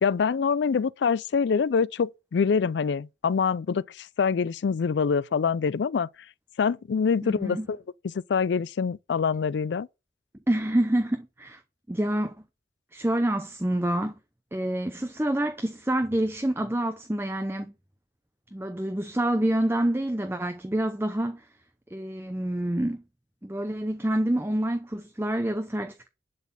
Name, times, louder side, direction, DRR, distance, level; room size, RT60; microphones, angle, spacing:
voice 1, 0.0-6.1 6.6-7.8 8.0-9.9, left 6 dB, 75° left, 0.4 m, -25 dB
voice 2, 7.2-7.7 10.5-11.6 11.9-12.4 12.9-14.1 14.5-17.7 18.5-21.5 21.9-23.0 23.4-26.1, right 1 dB, 15° right, 0.6 m, -27 dB
11.0 x 4.1 x 6.9 m
head